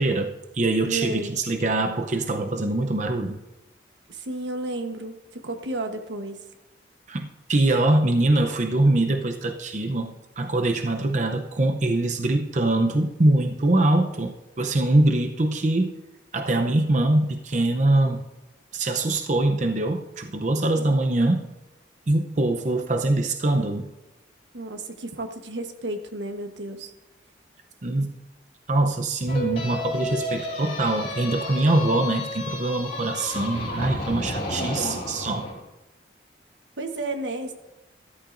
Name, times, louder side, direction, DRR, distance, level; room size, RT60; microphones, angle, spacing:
voice 1, 0.0-3.4 7.1-15.9 16.3-18.3 18.7-21.5 22.1-23.9 27.8-28.1 28.7-35.5, right 2 dB, 45° right, 6 dB, 0.7 m, -23 dB
voice 2, 0.9-1.4 4.1-6.5 20.7-21.0 24.5-26.9 34.6-35.0 36.8-37.5, right 2 dB, 90° right, 6 dB, 1.2 m, -32 dB
sound 1, 29.3-35.5, left 1 dB, 35° left, 3.5 m, -32 dB
13.5 x 13.5 x 2.6 m, 1.0 s
head